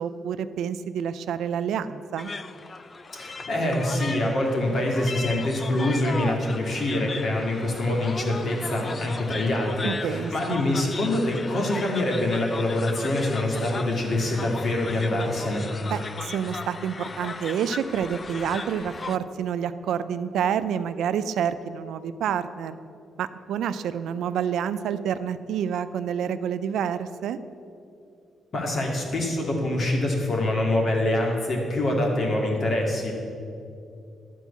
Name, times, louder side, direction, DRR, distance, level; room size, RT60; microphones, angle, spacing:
voice 1, 0.0-2.3 9.8-10.6 15.9-22.8 23.2-27.4, right 8 dB, 85° right, 12 dB, 0.4 m, -28 dB
sound 1, 2.2-19.2, left 4 dB, 30° left, 0.4 m, -37 dB
voice 2, 3.1-15.7 28.5-33.1, left 1 dB, 50° left, 0 dB, 2.1 m, -25 dB
12.0 x 4.5 x 8.3 m, 2.6 s
cardioid pair, 115°, 0 cm